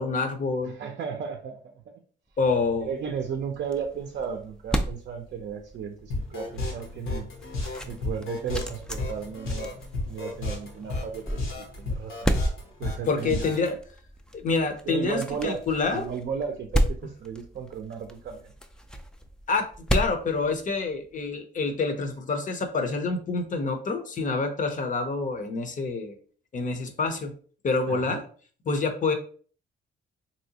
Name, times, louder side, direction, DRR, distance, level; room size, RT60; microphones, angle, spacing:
voice 1, 0.0-0.8 2.4-2.9 13.1-13.8 14.3-16.0 19.5-26.2 26.5-27.3 27.6-28.2 28.7-29.1, left 4 dB, 40° left, 7 dB, 0.6 m, -27 dB
voice 2, 0.6-1.8 2.8-7.3 7.9-12.3 12.8-13.5 14.8-15.6 15.9-18.5 27.9-28.2, right 7 dB, 55° right, 4 dB, 0.5 m, -34 dB
sound 1, 2.4-21.2, equal, 5° left, 0.3 m, -34 dB
sound 2, 6.1-13.7, left 2 dB, 90° left, 1.1 m, -32 dB
3.2 x 2.7 x 2.7 m, 0.43 s
cardioid pair, 90°, 20 cm